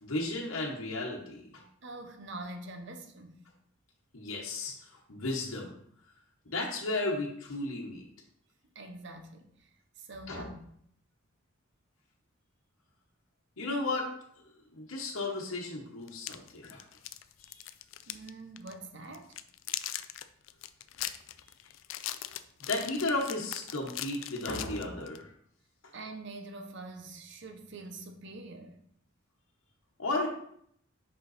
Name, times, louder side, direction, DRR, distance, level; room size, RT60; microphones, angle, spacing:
voice 1, 0.0-1.6 4.1-5.8 6.5-8.0 10.3-10.5 13.6-14.1 14.7-16.8 17.4-17.6 22.6-25.3 30.0-30.3, left 2 dB, 85° left, -3 dB, 1.1 m, -34 dB
voice 2, 1.8-3.4 8.7-9.7 10.0-10.7 18.1-19.4 25.9-28.8, right 2 dB, 60° right, 6 dB, 0.9 m, -45 dB
sound 1, 16.1-18.3 18.6-18.7 19.1-25.2, left 13 dB, 70° left, 0.4 m, -40 dB
5.5 x 5.4 x 4.1 m, 0.68 s
head